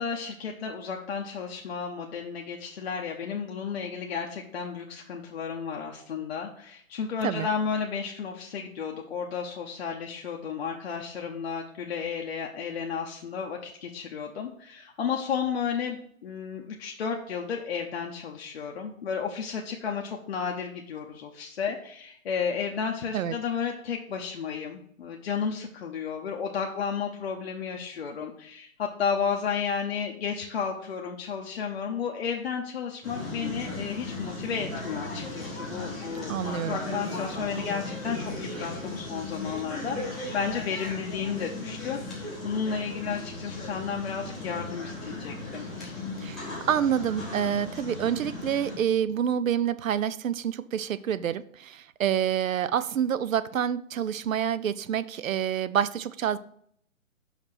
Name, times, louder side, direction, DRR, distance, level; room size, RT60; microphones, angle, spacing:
voice 1, 0.0-36.3 36.6-45.9, left 6 dB, 50° left, 1 dB, 0.8 m, -33 dB
sound 1, 33.0-48.8, left 2 dB, ahead, 0.7 m, -36 dB
voice 2, 36.3-36.8 46.2-46.4 46.7-56.4, right 9 dB, 70° right, 15 dB, 0.6 m, -27 dB
5.8 x 4.3 x 6.0 m, 0.65 s
hypercardioid pair, 150°, 41 cm